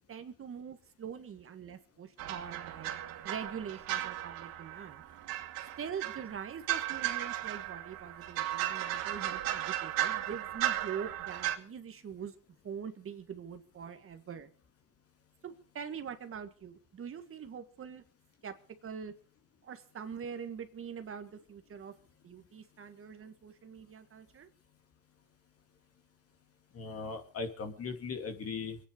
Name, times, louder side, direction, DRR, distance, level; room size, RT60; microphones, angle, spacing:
voice 1, 0.0-2.9 3.2-5.0 5.8-12.3 12.6-14.5 15.4-18.0 18.4-18.5 18.8-19.1 19.6-21.9 22.2-24.5, right 7 dB, 35° right, 8 dB, 1.8 m, -43 dB
sound 1, 2.2-11.6, right 13 dB, 65° right, 2.6 m, -36 dB
voice 2, 26.7-28.8, left 4 dB, 40° left, 6 dB, 2.6 m, -38 dB
24.0 x 9.8 x 5.2 m, 0.41 s
supercardioid pair, 110°, 38 cm